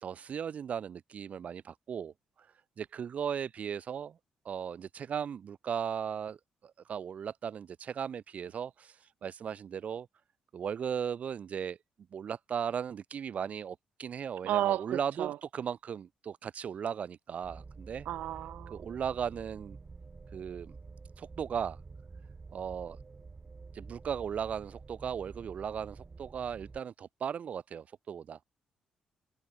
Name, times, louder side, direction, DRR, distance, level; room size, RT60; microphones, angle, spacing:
voice 1, 0.0-2.5 2.8-4.1 4.4-6.4 6.6-10.1 10.5-11.8 12.1-18.1 18.7-19.8 20.3-20.7 21.2-21.8 22.5-23.0 23.7-28.4, right 8 dB, 60° right, 0.7 m, -37 dB
voice 2, 14.4-15.4 18.0-18.8, right 13 dB, 75° right, 1.3 m, -32 dB
sound 1, 17.4-26.8, right 4 dB, 35° right, 4.0 m, -49 dB
supercardioid pair, 50°, 3 cm